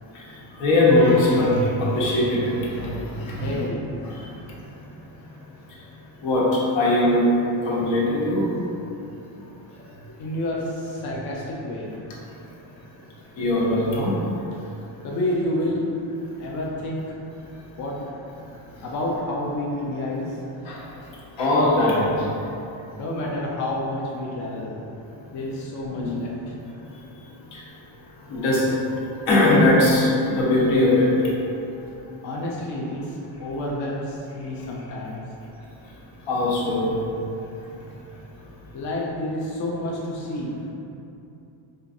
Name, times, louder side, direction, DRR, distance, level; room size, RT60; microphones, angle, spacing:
voice 1, 0.6-3.7 6.2-7.3 7.6-8.5 13.4-14.2 20.6-20.8 21.4-22.3 25.9-26.1 27.5-27.6 28.3-28.7 29.3-31.2 36.3-37.0, left 1 dB, 70° left, -6 dB, 1.1 m, -20 dB
voice 2, 3.4-3.8 4.1-4.3 10.2-11.9 15.0-15.9 16.4-17.0 17.8-17.9 18.8-20.4 23.0-24.9 25.3-26.3 32.2-35.2 38.7-40.7, left 1 dB, 40° left, -4 dB, 0.5 m, -29 dB
4.4 x 2.5 x 2.6 m, 2.8 s
cardioid pair, 115°, 46 cm